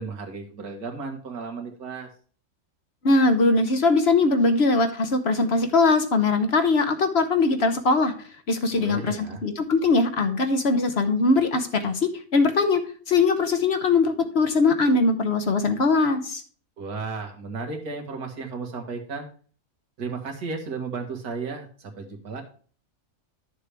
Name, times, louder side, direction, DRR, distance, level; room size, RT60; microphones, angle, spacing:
voice 1, 0.0-2.1 8.7-9.4 16.8-19.3 20.0-22.4, right 4 dB, 90° right, 2 dB, 2.1 m, -34 dB
voice 2, 3.0-8.1 8.5-12.8 13.1-16.4, left 3 dB, 50° left, 8 dB, 1.0 m, -21 dB
11.5 x 6.8 x 3.4 m, 0.43 s
omnidirectional pair, 1.6 m